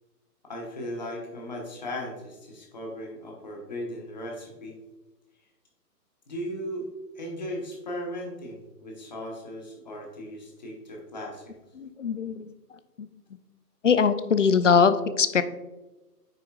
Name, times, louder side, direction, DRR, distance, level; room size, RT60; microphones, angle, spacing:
voice 1, 0.4-4.7 6.3-6.9 7.1-11.4, equal, 25° left, 0 dB, 1.2 m, -37 dB
voice 2, 11.8-12.5 13.0-13.1 13.8-15.4, left 6 dB, 50° left, 12 dB, 0.5 m, -22 dB
9.1 x 5.9 x 2.4 m, 1.1 s
hypercardioid pair, 175°, 48 cm